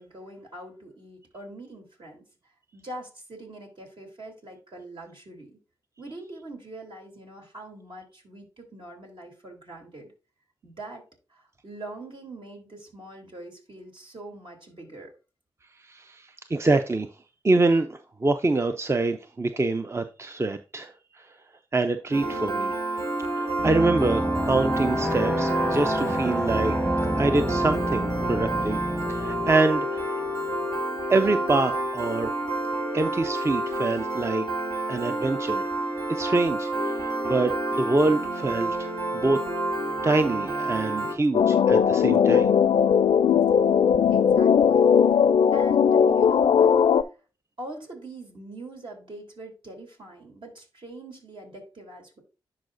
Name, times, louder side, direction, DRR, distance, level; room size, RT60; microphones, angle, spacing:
voice 1, 0.0-2.2 2.7-5.5 6.0-10.1 10.6-11.0 11.3-15.1 22.1-22.5 44.1-45.2 45.5-46.8 47.6-52.2, right 2 dB, 60° right, 1 dB, 3.0 m, -43 dB
voice 2, 15.8-17.1 17.4-21.3 21.7-22.7 23.3-26.8 27.2-28.8 29.1-30.1 31.1-32.3 32.9-34.5 34.9-35.7 36.1-39.4 40.0-42.5, right 2 dB, 30° right, 8 dB, 0.5 m, -25 dB
Piano, 22.1-41.1, right 1 dB, 75° right, 2.5 m, -29 dB
sound 1, 23.6-29.5, equal, 15° right, 1.3 m, -28 dB
sound 2, 41.3-47.0, left 7 dB, 70° left, 0.4 m, -19 dB
10.5 x 4.9 x 2.6 m, 0.32 s
supercardioid pair, 45°, 10 cm